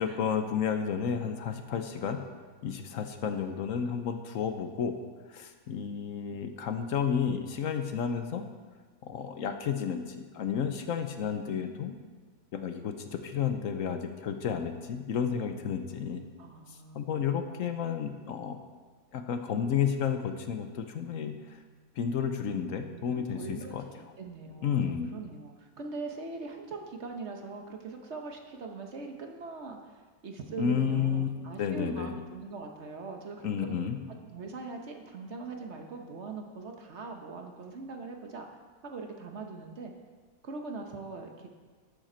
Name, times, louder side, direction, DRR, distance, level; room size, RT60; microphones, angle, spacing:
voice 1, 0.0-2.2 2.6-4.9 5.3-8.4 9.0-11.9 12.5-16.2 16.7-18.6 19.1-21.6 22.0-23.8 24.6-25.1 30.6-32.2 33.4-34.0, left 7 dB, 65° left, 7 dB, 1.1 m, -31 dB
voice 2, 11.3-12.0 16.4-17.1 22.5-33.8 34.2-38.5 38.8-39.9 40.4-41.5, right 4 dB, 50° right, 3 dB, 1.2 m, -42 dB
12.5 x 7.6 x 4.4 m, 1.5 s
omnidirectional pair, 1.6 m